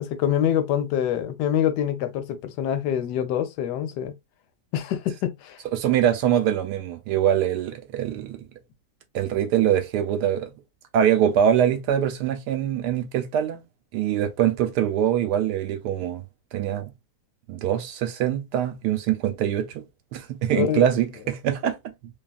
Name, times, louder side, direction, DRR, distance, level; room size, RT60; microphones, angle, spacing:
voice 1, 0.0-4.1 4.7-5.6 20.5-20.9, left 9 dB, 90° left, 1.2 m, -25 dB
voice 2, 5.7-8.4 9.1-10.5 10.9-13.6 13.9-16.2 16.5-16.9 17.5-19.8 20.1-21.8, right 10 dB, 80° right, 1.2 m, -23 dB
2.8 x 2.3 x 2.3 m
omnidirectional pair, 1.8 m